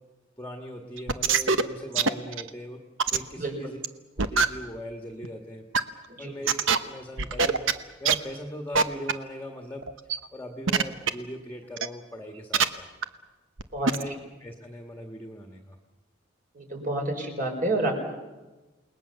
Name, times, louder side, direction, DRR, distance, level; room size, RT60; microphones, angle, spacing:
voice 1, 0.4-2.8 3.1-3.8 4.2-5.7 6.2-7.6 8.0-9.9 10.3-12.9 13.8-14.1 14.4-15.8, equal, 10° left, 3 dB, 1.7 m, -39 dB
sound 1, 1.0-1.6 2.0-2.5 3.0-3.2 3.8-3.9 4.2-4.5 5.2-5.3 5.7-5.8 6.4-6.8 7.2-7.7 8.1-8.2 8.8-8.9 9.1-9.2 9.8-10.2 10.7-11.1 11.8-11.9 12.5-12.6 13.0-13.1 13.6-13.7 13.9-14.0, right 5 dB, 75° right, 1.1 m, -22 dB
voice 2, 16.5-18.2, right 2 dB, 45° right, 2 dB, 5.2 m, -29 dB
29.0 x 20.0 x 7.0 m, 1.2 s
head